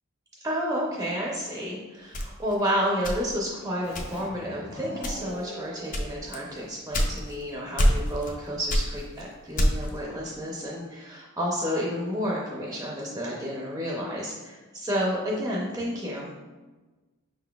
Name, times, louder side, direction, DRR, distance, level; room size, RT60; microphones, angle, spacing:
voice 1, 0.4-16.3, equal, 15° right, -3 dB, 0.5 m, -31 dB
sound 1, 2.1-3.5 3.9-4.4 5.0-5.4 5.9-7.4 7.8-8.4 8.7-10.0, equal, 40° left, 0.5 m, -25 dB
Keyboard (musical), 3.8-7.2, equal, 75° left, 1.3 m, -43 dB
5.1 x 3.8 x 2.2 m, 1.2 s
head